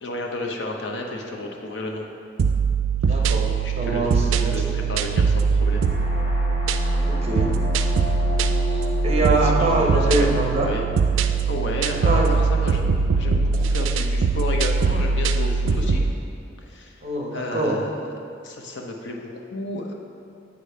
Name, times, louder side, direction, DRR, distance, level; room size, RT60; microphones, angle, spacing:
voice 1, 0.0-2.1 3.1-3.3 3.6-4.1 4.4-5.9 9.1-10.8 11.5-12.8 13.2-16.0 16.6-17.0 17.3-17.9 18.4-19.9, left 2 dB, 70° left, 1 dB, 0.8 m, -32 dB
sound 1, 2.4-16.1, right 4 dB, 90° right, 0.3 m, -21 dB
voice 2, 3.1-4.9 6.9-7.6 8.6-10.7 11.9-12.3 17.0-17.8, right 1 dB, 35° right, -1 dB, 1.0 m, -25 dB
sound 2, 5.6-13.4, equal, 35° left, 0.9 m, -35 dB
7.3 x 5.0 x 5.5 m, 2.5 s
head